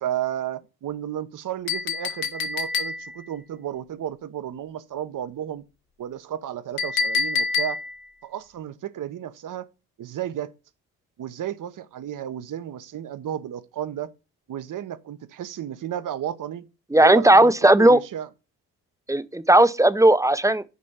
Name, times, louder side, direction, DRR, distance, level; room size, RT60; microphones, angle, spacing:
voice 1, 0.0-5.6 6.0-7.8 8.2-9.7 10.0-10.5 11.2-14.1 14.5-16.7 17.0-18.3, right 10 dB, 55° right, 1.0 m, -33 dB
Chink clink, 1.7-3.3 6.8-8.1, left 4 dB, 65° left, 1.6 m, -27 dB
voice 2, 16.9-18.0 19.1-20.6, right 1 dB, 10° right, 0.7 m, -16 dB
6.4 x 5.2 x 7.0 m
hypercardioid pair, 50°, 39 cm